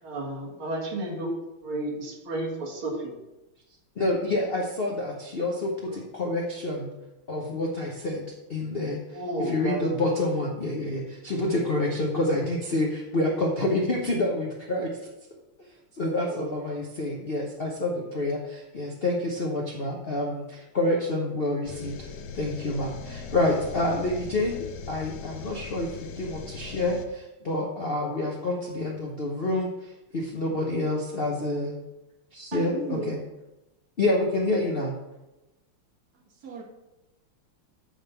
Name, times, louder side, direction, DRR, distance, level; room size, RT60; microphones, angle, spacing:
voice 1, 0.0-1.3 1.6-3.1 9.1-9.8 16.2-16.5, right 2 dB, 75° right, 2.7 m, -32 dB
voice 2, 4.0-6.9 7.3-8.2 8.5-14.9 15.9-22.0 22.3-31.8 32.3-33.2 34.0-34.9, left 2 dB, 50° left, 0.7 m, -28 dB
sound 1, 21.6-27.1, left 5 dB, 65° left, 1.1 m, -39 dB
voice 3, 32.5-33.2 36.4-36.6, right 1 dB, 50° right, 1.8 m, -33 dB
8.8 x 3.6 x 6.8 m
omnidirectional pair, 2.3 m